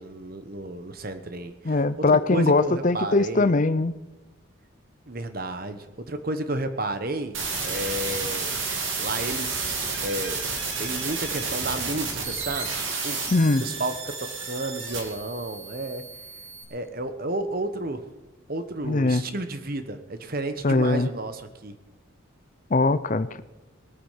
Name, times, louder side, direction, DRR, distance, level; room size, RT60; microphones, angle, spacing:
voice 1, 0.0-3.5 5.1-7.4 7.6-8.5 9.0-9.8 10.0-10.4 10.8-13.2 13.6-16.0 16.7-18.1 18.5-21.7, right 2 dB, 45° right, 9 dB, 1.1 m, -32 dB
voice 2, 1.6-3.9 13.3-13.6 18.8-19.2 20.6-21.1 22.7-23.4, left 3 dB, 40° left, 14 dB, 0.5 m, -21 dB
sound 1, 7.3-16.6, right 4 dB, 70° right, 2.8 m, -31 dB
20.0 x 8.8 x 5.8 m, 1.1 s
head